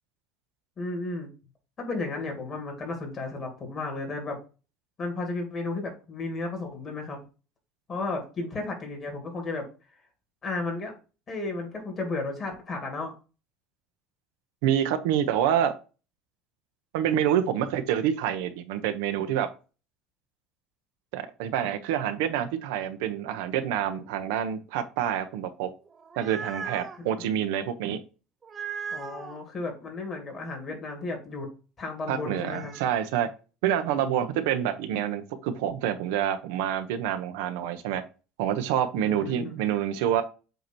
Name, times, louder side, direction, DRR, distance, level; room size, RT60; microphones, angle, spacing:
voice 1, 0.8-1.3 1.8-4.4 5.0-7.2 7.9-9.6 10.4-10.9 11.3-13.1 27.0-27.4 28.9-31.5 31.8-32.7 39.0-39.7, left 3 dB, 25° left, 2 dB, 2.3 m, -33 dB
voice 2, 14.6-15.7 16.9-19.5 21.1-25.7 26.2-28.0 32.1-33.3 33.6-38.0 38.4-40.2, right 10 dB, 90° right, 8 dB, 0.9 m, -27 dB
sound 1, 25.9-27.0 28.4-29.4 32.2-32.9, right 6 dB, 20° right, 0.7 m, -38 dB
7.9 x 2.9 x 4.5 m, 0.32 s
cardioid pair, 160°, 0 cm